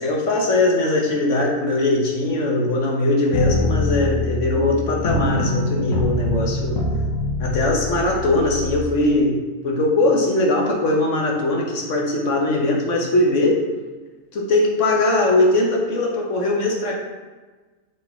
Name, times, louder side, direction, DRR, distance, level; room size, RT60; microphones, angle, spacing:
voice 1, 0.0-6.8 7.4-9.3 9.6-13.6 14.3-16.9, left 2 dB, 65° left, -1 dB, 1.5 m, -20 dB
sound 1, 3.3-8.8, left 1 dB, 90° left, 1.5 m, -24 dB
6.5 x 4.0 x 4.4 m, 1.3 s
omnidirectional pair, 1.4 m